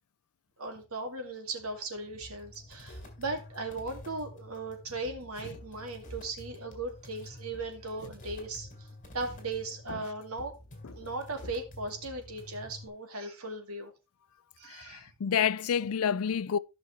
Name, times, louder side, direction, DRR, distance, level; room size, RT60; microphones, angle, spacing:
voice 1, 0.6-8.7 9.1-10.5 10.9-13.9 14.6-15.1, right 2 dB, 75° right, 2.3 m, -37 dB
sound 1, 2.2-12.9, left 1 dB, 40° left, 3.4 m, -48 dB
voice 2, 14.7-16.6, left 8 dB, 75° left, 0.4 m, -29 dB
14.5 x 6.2 x 3.2 m
head